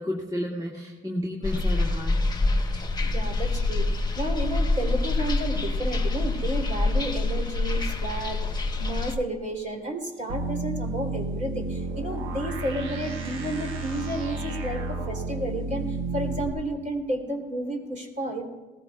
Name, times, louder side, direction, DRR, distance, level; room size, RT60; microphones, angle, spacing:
voice 1, 0.0-2.2, equal, 20° right, -4 dB, 2.0 m, -31 dB
sound 1, 1.4-9.2, left 2 dB, 20° left, 1.2 m, -26 dB
voice 2, 3.0-18.4, right 1 dB, 40° right, 0 dB, 3.3 m, -32 dB
sound 2, 10.3-16.5, right 3 dB, 85° right, 1.3 m, -32 dB
19.0 x 14.5 x 2.4 m, 1.2 s
cardioid pair, 90°, 20 cm